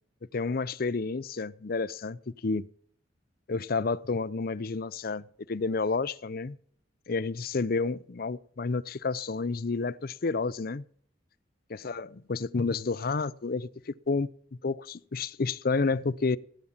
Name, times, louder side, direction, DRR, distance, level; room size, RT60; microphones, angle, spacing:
voice 1, 0.3-2.7 3.5-6.6 7.1-10.8 11.7-14.3 14.6-16.4, left 4 dB, 50° left, 0.6 m, -30 dB
16.0 x 10.0 x 7.3 m
head